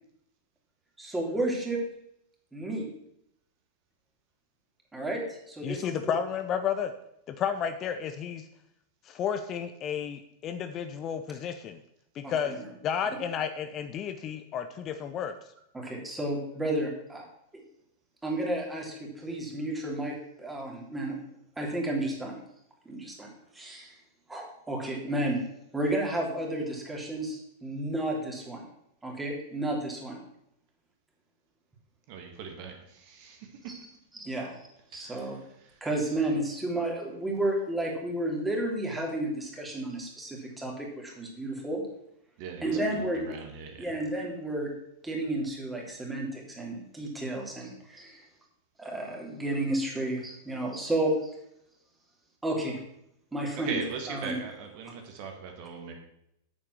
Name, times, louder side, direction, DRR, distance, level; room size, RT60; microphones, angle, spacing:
voice 1, 1.0-1.8 2.5-2.8 4.9-6.0 12.2-12.6 15.7-17.2 18.2-21.2 21.6-22.3 22.8-23.9 24.3-25.4 25.7-28.6 29.0-30.2 34.2-34.5 34.9-35.4 35.8-41.8 42.6-43.3 43.8-44.7 45.0-48.2 48.8-51.3 52.4-52.8 53.3-53.8 54.1-54.4, right 1 dB, 10° right, -1 dB, 3.1 m, -32 dB
voice 2, 5.6-6.9 7.3-8.4 9.1-11.8 12.2-12.5 12.8-15.3, left 8 dB, 30° left, 9 dB, 0.7 m, -32 dB
voice 3, 32.1-33.7 34.9-35.9 42.4-43.9 53.6-55.9, right 5 dB, 45° right, 3 dB, 2.1 m, -40 dB
8.7 x 7.5 x 6.3 m, 0.77 s
figure-of-eight pair, 90°, 0 cm